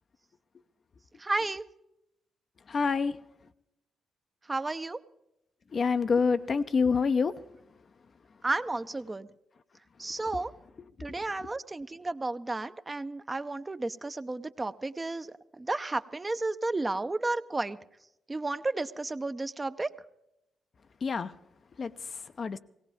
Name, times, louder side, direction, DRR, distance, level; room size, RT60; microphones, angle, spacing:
voice 1, 1.2-1.7 4.5-5.0 8.4-9.3 10.0-10.5 11.0-17.8 18.3-19.9, right 2 dB, 25° right, 10 dB, 0.7 m, -32 dB
voice 2, 2.7-3.2 5.7-7.3 21.0-21.3 21.8-22.6, left 5 dB, 50° left, 10 dB, 0.6 m, -27 dB
18.5 x 17.5 x 3.5 m, 0.85 s
hypercardioid pair, 45°, 0 cm